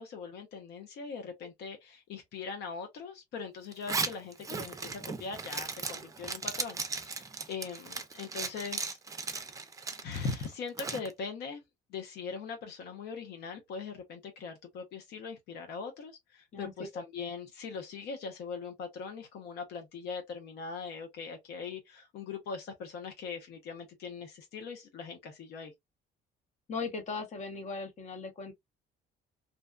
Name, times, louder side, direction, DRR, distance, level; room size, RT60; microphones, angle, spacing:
voice 1, 0.0-9.0 9.3-9.4 10.0-11.6 11.9-25.7, left 5 dB, 75° left, 0.8 m, -41 dB
Zipper (clothing), 3.7-11.1, right 4 dB, 20° right, 0.5 m, -37 dB
voice 2, 26.7-28.5, left 4 dB, 45° left, 0.9 m, -38 dB
2.7 x 2.2 x 2.3 m
cardioid pair, 110°, 17 cm